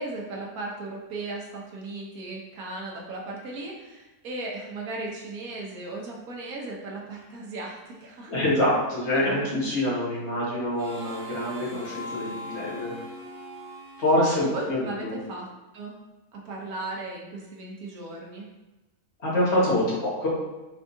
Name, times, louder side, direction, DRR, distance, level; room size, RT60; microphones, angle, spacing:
voice 1, 0.0-8.3 14.4-15.5 15.7-15.9 16.3-18.4, right 2 dB, 70° right, -2 dB, 1.2 m, -36 dB
voice 2, 8.3-12.9 14.0-15.2 19.2-20.3, left 1 dB, 45° left, -7 dB, 1.6 m, -25 dB
Harmonica, 10.8-15.2, equal, 45° right, 1.4 m, -40 dB
4.5 x 3.4 x 2.6 m, 1.1 s
omnidirectional pair, 1.6 m